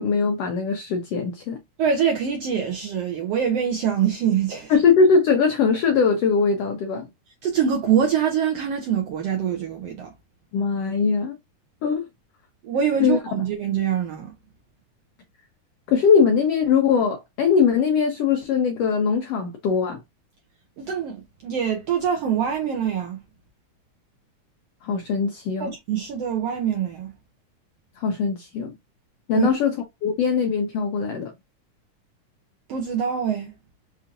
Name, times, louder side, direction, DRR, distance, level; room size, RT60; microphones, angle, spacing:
voice 1, 0.0-1.6 4.7-7.1 10.5-11.4 11.8-12.1 13.0-13.2 15.9-20.0 24.8-25.7 28.0-28.7 29.3-29.8 30.0-31.3, left 5 dB, 90° left, 1.3 m, -21 dB
voice 2, 1.8-4.7 7.4-10.1 12.6-14.3 20.8-23.2 25.6-27.1 29.3-29.5 32.7-33.5, right 8 dB, 80° right, 1.4 m, -24 dB
5.4 x 2.6 x 2.5 m
omnidirectional pair, 3.6 m